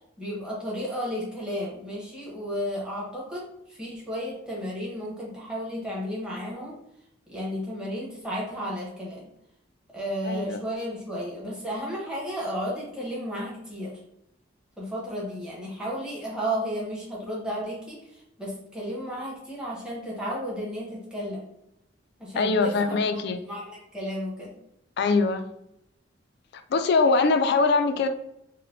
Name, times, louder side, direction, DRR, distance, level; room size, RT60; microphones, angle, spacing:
voice 1, 0.2-6.8 7.3-9.3 9.9-13.9 14.8-21.5 22.2-24.5, equal, 5° right, -5 dB, 1.0 m, -33 dB
voice 2, 10.3-10.6 22.3-23.4 25.0-25.5 26.7-28.1, left 4 dB, 60° left, 8 dB, 0.3 m, -22 dB
4.0 x 2.1 x 2.6 m, 0.80 s
head